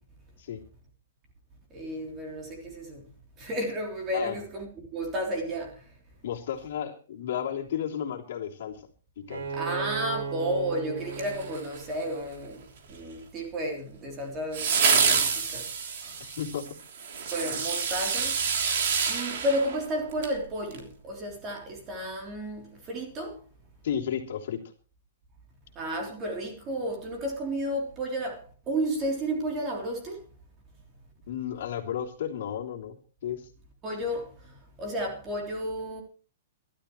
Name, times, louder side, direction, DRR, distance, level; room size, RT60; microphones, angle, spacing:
voice 1, 1.7-3.1 3.4-5.9 9.5-15.7 16.0-16.2 17.3-18.4 19.1-23.4 25.7-30.2 33.8-36.0, right 1 dB, 20° right, 3.4 m, -32 dB
voice 2, 6.2-8.8 9.2-9.4 16.2-16.7 23.8-24.6 31.3-33.5, left 9 dB, 55° left, 3.2 m, -33 dB
Bowed string instrument, 9.3-12.9, right 5 dB, 75° right, 4.2 m, -37 dB
sound 1, 11.1-12.0 14.5-20.4 20.7-20.8, right 6 dB, 50° right, 3.3 m, -27 dB
24.0 x 12.5 x 3.2 m
hypercardioid pair, 170°, 0 cm